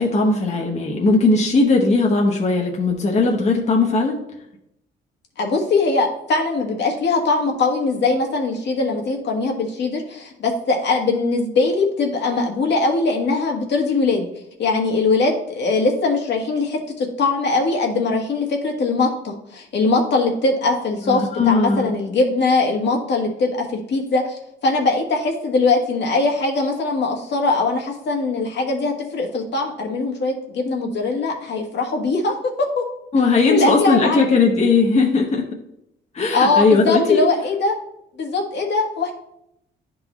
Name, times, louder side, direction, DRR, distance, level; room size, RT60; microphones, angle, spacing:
voice 1, 0.0-4.2 21.0-21.9 33.1-35.4 36.1-37.2, left 3 dB, 35° left, 0 dB, 1.0 m, -18 dB
voice 2, 5.4-14.2 14.6-32.8 33.5-34.2 36.3-37.7 38.2-39.1, left 3 dB, 60° left, 1 dB, 1.4 m, -21 dB
10.5 x 3.9 x 3.0 m, 0.80 s
cardioid pair, 90°, 20 cm